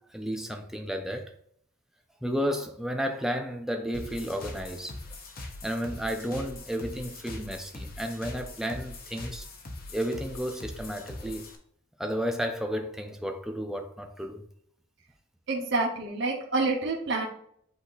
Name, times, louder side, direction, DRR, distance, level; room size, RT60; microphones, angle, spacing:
voice 1, 0.1-1.3 2.2-4.9 5.6-9.4 9.9-11.4 12.0-14.4, equal, ahead, 0.7 m, -32 dB
sound 1, 3.9-11.5, left 2 dB, 45° left, 1.1 m, -42 dB
voice 2, 15.5-17.3, right 3 dB, 60° right, 1.2 m, -28 dB
8.2 x 2.9 x 4.0 m
head